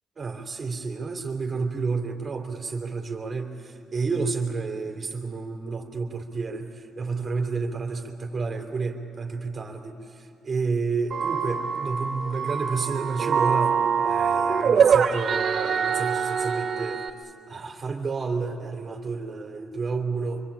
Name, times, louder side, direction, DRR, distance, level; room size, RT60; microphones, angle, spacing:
voice 1, 0.2-17.0 17.5-20.4, right 4 dB, 40° right, 3 dB, 3.2 m, -30 dB
sound 1, 11.1-17.1, right 6 dB, 55° right, 2.0 m, -24 dB
25.5 x 23.5 x 8.7 m, 2.5 s
cardioid pair, 90°, 0 cm